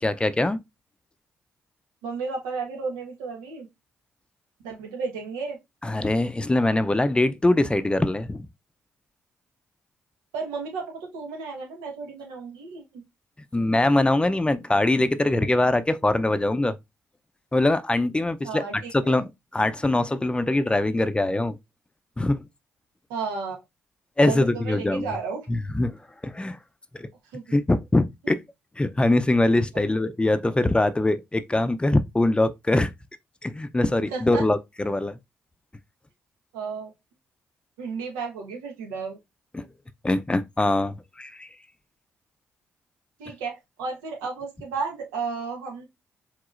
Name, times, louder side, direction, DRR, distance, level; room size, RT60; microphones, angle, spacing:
voice 1, 0.0-0.6 5.8-8.5 13.5-16.7 17.5-18.6 19.1-21.5 22.2-22.4 24.2-25.1 25.5-26.0 26.2-26.6 26.9-27.1 27.5-28.4 28.8-32.9 33.4-35.2 39.5-39.7 40.0-41.5, left 2 dB, 15° left, 0.5 m, -23 dB
voice 2, 2.0-3.7 4.6-5.6 10.3-13.0 18.4-19.2 23.1-23.6 24.2-25.5 27.3-27.4 28.2-28.3 29.7-29.8 34.1-34.4 36.5-36.9 37.8-39.2 43.2-45.9, right 5 dB, 85° right, 1.2 m, -33 dB
4.8 x 3.6 x 2.5 m
hypercardioid pair, 45°, 6 cm